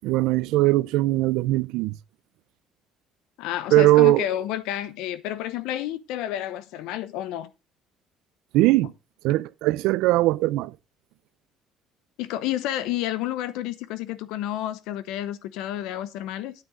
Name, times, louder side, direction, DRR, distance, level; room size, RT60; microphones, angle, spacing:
voice 1, 0.0-1.9 3.7-4.2 8.5-8.9 9.2-10.7, right 17 dB, 85° right, 0.4 m, -20 dB
voice 2, 3.4-7.5 12.2-16.5, left 12 dB, 80° left, 0.8 m, -30 dB
9.2 x 8.7 x 3.7 m
cardioid pair, 175°, 0 cm